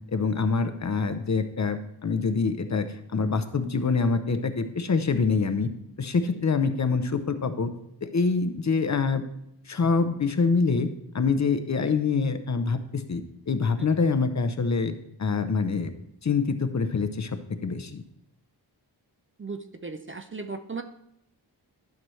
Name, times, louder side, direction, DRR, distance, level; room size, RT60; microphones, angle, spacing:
voice 1, 0.1-5.7 6.0-7.7 8.0-9.2 9.7-10.9 11.1-14.9 15.2-15.9 16.2-18.0, left 4 dB, 40° left, 9 dB, 0.7 m, -25 dB
voice 2, 19.4-20.8, right 4 dB, 30° right, 8 dB, 0.5 m, -36 dB
12.0 x 6.0 x 3.2 m, 0.78 s
wide cardioid pair, 110°, 42 cm